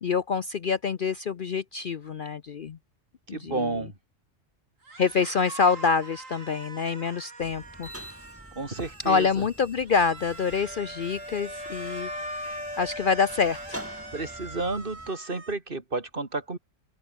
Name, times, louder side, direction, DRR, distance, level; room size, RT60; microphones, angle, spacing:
voice 1, 0.0-2.8 3.3-3.8 5.0-7.9 9.0-13.8, left 5 dB, 50° left, 0.8 m, -26 dB
voice 2, 3.3-3.9 8.6-9.5 14.1-16.6, right 3 dB, 45° right, 2.6 m, -31 dB
sound 1, 4.8-9.3 9.8-15.5, right 3 dB, 90° right, 4.0 m, -45 dB
sound 2, 7.4-15.1, equal, 10° right, 4.9 m, -46 dB
Wind instrument woodwind instrument, 10.6-14.7, left 1 dB, 20° left, 5.3 m, -39 dB
open air
omnidirectional pair, 1.3 m